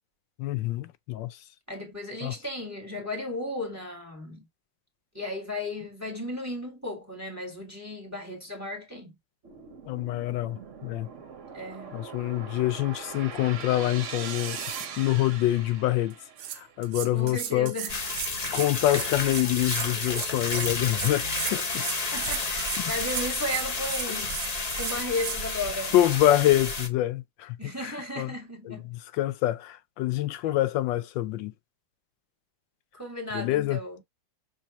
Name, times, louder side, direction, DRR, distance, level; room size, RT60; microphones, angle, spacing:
voice 1, 0.4-1.4 2.2-2.3 9.9-11.1 11.9-14.6 15.0-16.1 16.5-17.7 18.5-22.2 22.8-22.9 24.1-24.2 25.9-28.3 28.7-31.5 33.3-33.8, left 14 dB, 90° left, 1.3 m, -26 dB
voice 2, 1.7-4.5 5.1-9.2 11.5-11.9 17.1-17.9 22.1-24.4 24.7-26.0 27.6-28.9 32.9-34.0, left 1 dB, 10° right, 1.4 m, -35 dB
sound 1, 9.4-16.7, right 6 dB, 50° right, 1.0 m, -40 dB
sound 2, 16.1-16.2 16.4-25.4, right 12 dB, 75° right, 1.2 m, -36 dB
sound 3, 17.9-26.9, left 3 dB, 45° left, 0.5 m, -31 dB
5.7 x 2.4 x 3.0 m
omnidirectional pair, 2.0 m